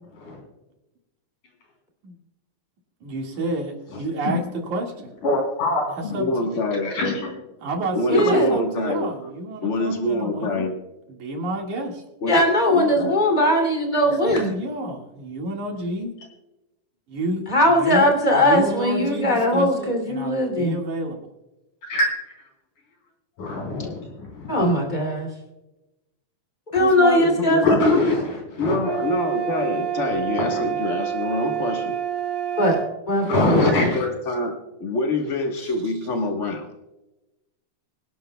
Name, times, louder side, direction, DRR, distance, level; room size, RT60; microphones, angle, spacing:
voice 1, 3.0-5.1 6.0-6.3 7.6-10.7 11.1-12.0 14.0-16.1 17.1-21.2 26.8-27.2 35.6-35.9, right 2 dB, 70° right, 1 dB, 3.4 m, -29 dB
voice 2, 5.2-6.2 6.8-7.3 8.8-8.9 14.3-14.4 21.9-22.1 23.4-24.5 26.7-26.8 27.6-28.8 30.5-30.6 33.2-34.1, left 2 dB, 80° left, 1 dB, 5.2 m, -23 dB
voice 3, 6.0-6.9 7.9-9.1 9.6-10.7 12.2-12.4 12.7-13.1 23.8-23.9 27.2-27.8 28.6-31.9 33.5-34.5 34.8-36.7, left 2 dB, 65° left, 2 dB, 0.7 m, -25 dB
voice 4, 8.1-8.5 12.3-14.5 17.5-20.8 24.5-25.3 26.7-27.8 32.6-33.6, left 1 dB, 15° left, 2 dB, 2.5 m, -20 dB
sound 1, 28.8-32.9, right 10 dB, 55° right, 2.2 m, -27 dB
24.5 x 11.5 x 2.3 m, 0.99 s
omnidirectional pair, 3.6 m